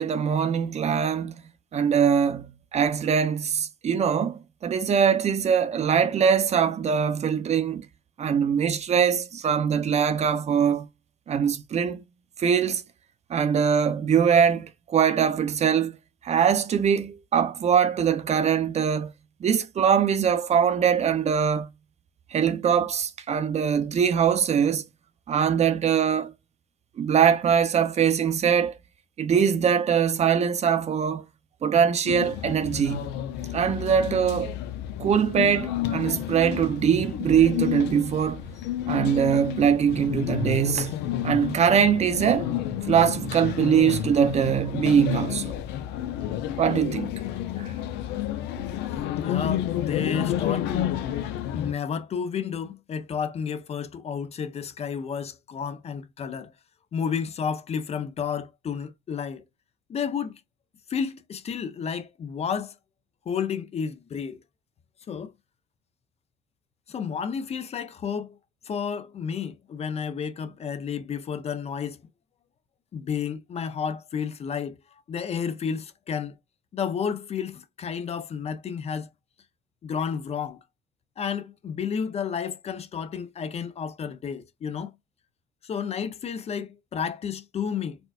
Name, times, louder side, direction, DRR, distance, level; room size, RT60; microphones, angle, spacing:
voice 1, 0.0-1.4 1.7-7.9 8.2-10.9 11.3-12.0 12.4-12.8 13.3-16.0 16.2-19.1 19.4-21.7 22.3-24.8 25.3-26.3 27.0-28.8 29.2-31.2 31.6-33.1 33.5-34.5 35.0-38.4 38.9-42.5 42.8-45.5 46.6-47.1 47.6-47.7, right 7 dB, 40° right, 0.6 m, -22 dB
sound 1, 32.1-51.7, left 11 dB, 85° left, 0.6 m, -30 dB
voice 2, 48.9-50.9 51.5-56.5 56.9-59.4 59.9-60.4 60.9-62.7 63.3-64.4 65.1-65.3 66.9-68.4 68.6-72.0 72.9-76.4 76.7-79.1 79.8-80.6 81.2-84.9 85.6-88.0, left 7 dB, 40° left, 0.5 m, -31 dB
4.3 x 2.2 x 2.3 m
cardioid pair, 110°, 17 cm